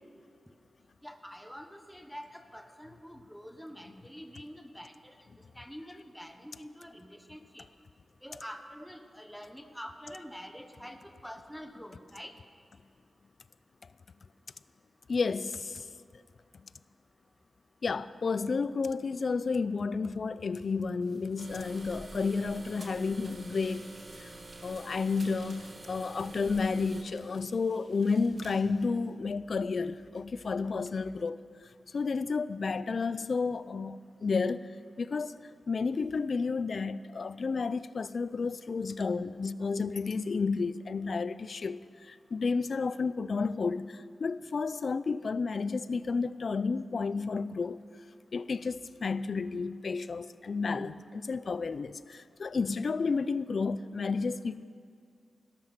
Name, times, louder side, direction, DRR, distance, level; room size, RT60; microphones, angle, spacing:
voice 1, 1.0-5.2 5.5-7.7 8.2-12.3, equal, ahead, 1.1 m, -46 dB
voice 2, 15.1-15.9 17.8-23.9 24.2-24.3 24.6-31.4 31.9-35.4 35.7-47.8 48.3-54.6, left 4 dB, 55° left, 0.4 m, -31 dB
sound 1, 20.5-20.7 21.0-22.1 23.3-25.7 26.8-28.8 29.1-29.2, right 2 dB, 60° right, 3.0 m, -59 dB
sound 2, 21.4-27.0, right 2 dB, 30° right, 1.4 m, -47 dB
18.0 x 12.0 x 5.9 m
wide cardioid pair, 100°, 0 cm